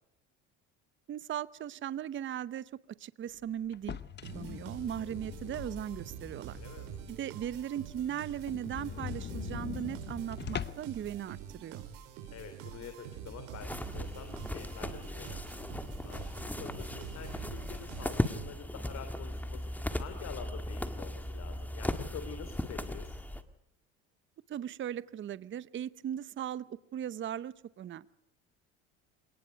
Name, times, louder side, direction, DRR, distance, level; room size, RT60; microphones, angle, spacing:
voice 1, 1.1-2.7 3.0-4.0 4.3-6.6 7.1-11.8 24.5-28.1, right 10 dB, 35° right, 17 dB, 0.8 m, -38 dB
sound 1, 3.7-6.3 6.7-6.8 7.2-7.3 7.6-7.7 7.9-8.0 8.4-11.0, left 8 dB, 35° left, 0.9 m, -41 dB
sound 2, 4.2-18.8, right 8 dB, 85° right, 4.7 m, -46 dB
voice 2, 6.5-6.9 12.3-15.4 16.0-23.2, left 7 dB, 55° left, 7 dB, 3.2 m, -47 dB
sound 3, 13.6-23.4, left 1 dB, 5° left, 1.7 m, -37 dB
26.5 x 19.0 x 5.2 m, 0.79 s
supercardioid pair, 100°, 32 cm